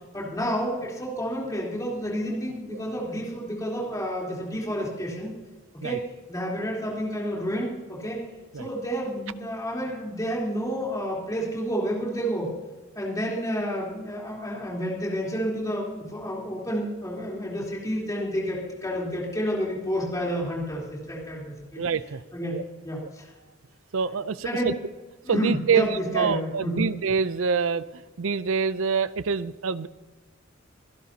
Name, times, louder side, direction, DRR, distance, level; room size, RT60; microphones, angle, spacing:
voice 1, 0.1-5.3 5.8-8.2 8.5-12.5 13.0-21.8 22.3-22.6 22.8-23.3 24.4-24.7 25.2-26.9, equal, 15° left, -4 dB, 3.7 m, -30 dB
voice 2, 21.8-22.2 22.5-22.6 23.9-24.7 25.3-27.8 28.2-29.9, right 6 dB, 75° right, 16 dB, 0.5 m, -26 dB
25.0 x 11.5 x 2.9 m, 1.2 s
head